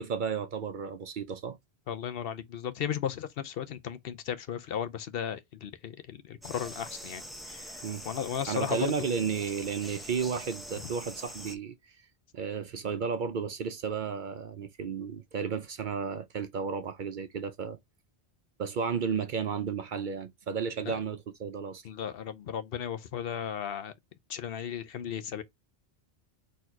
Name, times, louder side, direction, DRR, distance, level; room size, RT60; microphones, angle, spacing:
voice 1, 0.0-1.6 7.8-8.1 8.5-11.7 12.3-17.8 18.6-21.8, right 6 dB, 55° right, 0.7 m, -33 dB
voice 2, 1.9-8.9 20.8-21.0 21.8-23.9 24.3-25.4, left 8 dB, 65° left, 0.8 m, -35 dB
sound 1, 6.4-11.6, equal, ahead, 0.6 m, -44 dB
4.3 x 2.7 x 4.5 m
omnidirectional pair, 1.1 m